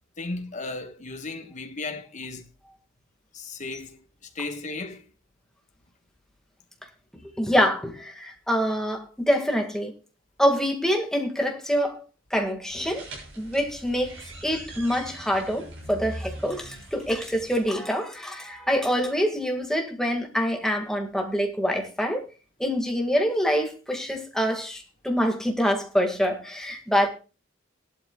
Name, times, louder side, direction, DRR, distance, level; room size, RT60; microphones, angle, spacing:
voice 1, 0.2-2.4 3.3-4.0 4.3-5.0, left 3 dB, 35° left, 1.4 m, -35 dB
voice 2, 7.4-9.9 10.4-12.0 12.3-13.1 13.4-14.1 14.4-22.2 22.6-27.1, equal, 5° left, 1.9 m, -25 dB
sound 1, 12.7-17.7, right 1 dB, 65° right, 6.6 m, -41 dB
18.0 x 12.0 x 2.4 m
head